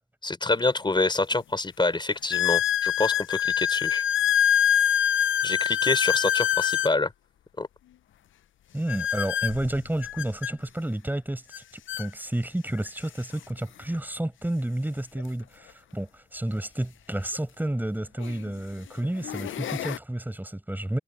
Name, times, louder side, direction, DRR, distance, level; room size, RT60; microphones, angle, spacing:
voice 1, 0.2-4.0 5.4-7.1 7.6-7.7, left 2 dB, 25° left, 3.8 m, -26 dB
sound 1, 0.6-0.7 1.3-1.4 2.3-7.0 8.9-10.5 11.5-11.6 11.9-12.1 12.9-13.0 15.2-15.3 17.3-17.4 18.2-18.5 19.0-20.0, left 10 dB, 80° left, 0.5 m, -25 dB
voice 2, 8.7-21.0, right 1 dB, 10° right, 5.0 m, -31 dB
wide cardioid pair, 105°, 20 cm